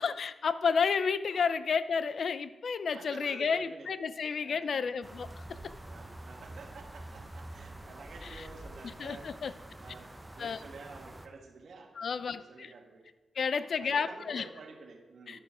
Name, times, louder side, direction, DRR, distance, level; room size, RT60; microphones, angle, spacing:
voice 1, 0.0-5.7 8.2-8.4 9.0-9.5 10.4-10.6 12.0-12.7 13.4-14.4 15.3-15.4, left 5 dB, 65° left, 14 dB, 0.5 m, -31 dB
voice 2, 2.9-3.9 4.4-4.9 5.9-9.3 9.8-13.1 13.5-15.4, right 4 dB, 70° right, 2 dB, 1.4 m, -50 dB
sound 1, 5.0-11.3, right 1 dB, 10° right, 0.9 m, -47 dB
11.0 x 6.9 x 5.0 m, 1.2 s
cardioid pair, 75°, 0 cm